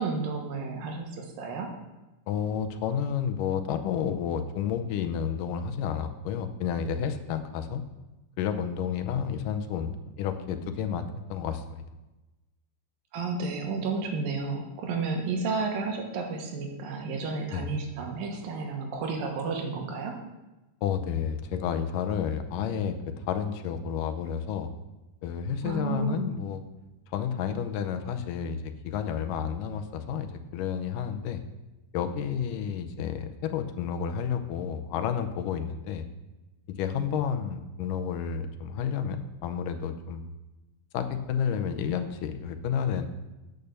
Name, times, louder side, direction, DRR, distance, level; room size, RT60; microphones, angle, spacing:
voice 1, 0.0-1.7 13.1-20.2 25.6-26.3, right 4 dB, 80° right, 3 dB, 3.1 m, -32 dB
voice 2, 2.3-7.8 8.4-11.8 17.5-17.8 20.8-24.7 25.2-26.6 27.1-31.4 31.9-36.1 36.8-40.3 40.9-43.1, left 7 dB, 80° left, 7 dB, 2.2 m, -31 dB
9.0 x 6.5 x 6.8 m, 1.1 s
omnidirectional pair, 4.0 m